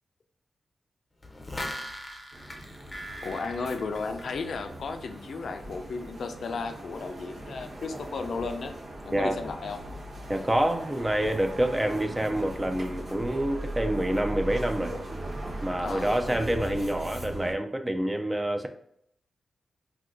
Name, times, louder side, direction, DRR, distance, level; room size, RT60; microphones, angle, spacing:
sound 1, 1.2-4.7 5.1-5.2, left 1 dB, 30° left, 0.6 m, -39 dB
sound 2, 2.3-17.5, right 1 dB, 85° right, 1.2 m, -39 dB
voice 1, 3.2-8.8 9.0-9.9 15.8-16.1, left 4 dB, 75° left, 6 dB, 0.4 m, -34 dB
voice 2, 10.3-14.9 15.6-18.7, right 1 dB, 20° right, 6 dB, 0.4 m, -27 dB
2.7 x 2.3 x 3.6 m, 0.70 s
supercardioid pair, 45°, 0 cm